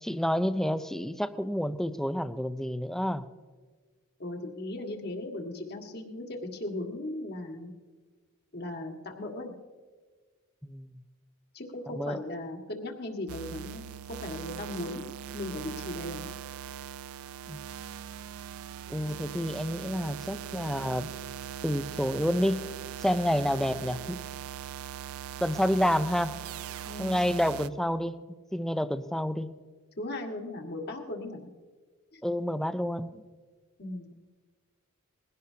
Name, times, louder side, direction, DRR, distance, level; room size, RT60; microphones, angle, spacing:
voice 1, 0.0-3.2 10.6-10.9 11.9-12.2 17.5-17.7 18.9-21.1 21.6-22.6 23.0-24.2 25.4-26.3 27.0-28.2 28.5-29.5 32.2-33.2, equal, ahead, 11 dB, 0.5 m, -29 dB
voice 2, 4.2-7.7 8.5-9.5 11.5-16.3 26.9-27.2 30.0-31.5 32.1-32.2 33.8-34.1, left 1 dB, 50° left, 2 dB, 1.9 m, -37 dB
sound 1, 13.3-27.7, right 10 dB, 75° right, 0.4 m, -40 dB
21.0 x 16.5 x 2.8 m, 1.4 s
head